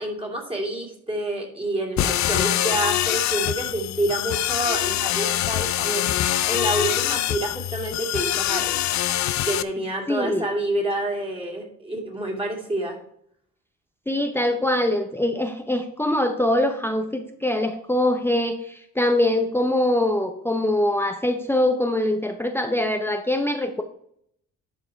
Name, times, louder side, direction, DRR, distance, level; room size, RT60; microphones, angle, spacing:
voice 1, 0.0-8.8 9.4-13.0, right 1 dB, 20° right, 0 dB, 2.8 m, -28 dB
sound 1, 2.0-9.6, left 13 dB, 65° left, 0.6 m, -24 dB
voice 2, 10.1-10.5 14.1-23.8, left 1 dB, 10° left, 6 dB, 0.8 m, -23 dB
11.0 x 4.7 x 4.5 m, 0.68 s
cardioid pair, 90°, 30 cm